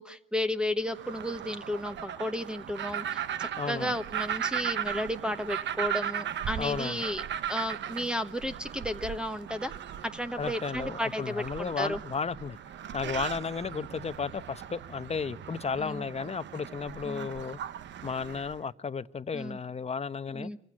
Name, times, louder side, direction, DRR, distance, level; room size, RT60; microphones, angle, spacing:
voice 1, 0.0-7.2 7.5-9.7 10.0-12.0 15.8-16.0 17.0-17.3 19.3-19.6 20.3-20.6, left 1 dB, 5° right, 1.1 m, -33 dB
sound 1, 0.9-18.6, right 10 dB, 65° right, 1.0 m, -37 dB
voice 2, 3.6-3.9 6.6-7.0 10.4-12.6 12.9-17.6 18.0-20.5, left 5 dB, 30° left, 0.9 m, -34 dB
25.5 x 15.5 x 9.8 m
cardioid pair, 90°, 20 cm